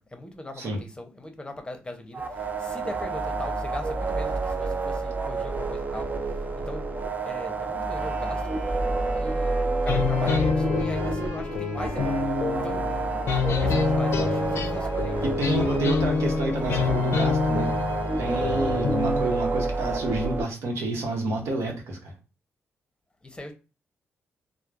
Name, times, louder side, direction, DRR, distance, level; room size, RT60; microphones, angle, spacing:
voice 1, 0.0-6.1 6.7-6.9 7.3-8.4 9.1-12.3 12.6-13.0 13.5-16.2 23.2-23.5, left 1 dB, 20° left, 0.7 m, -40 dB
sound 1, 2.1-20.4, right 3 dB, 35° right, 0.5 m, -29 dB
Wind instrument woodwind instrument, 7.8-15.6, right 1 dB, 20° right, 1.1 m, -45 dB
sound 2, 9.9-19.2, left 5 dB, 65° left, 0.5 m, -26 dB
voice 2, 15.2-17.7 18.2-22.1, right 2 dB, 80° right, 0.8 m, -29 dB
3.0 x 2.0 x 2.4 m
cardioid pair, 65°, 5 cm